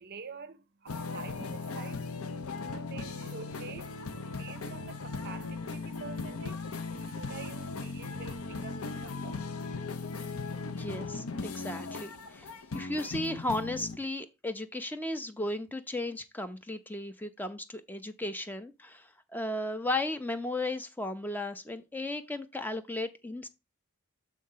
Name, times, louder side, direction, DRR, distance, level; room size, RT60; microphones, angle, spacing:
voice 1, 0.0-10.9, right 5 dB, 45° right, 0.5 m, -48 dB
sound 1, 0.9-14.0, left 4 dB, 80° left, 0.8 m, -38 dB
voice 2, 10.8-12.5 12.7-23.5, left 1 dB, 10° left, 0.5 m, -35 dB
7.7 x 3.6 x 5.5 m
head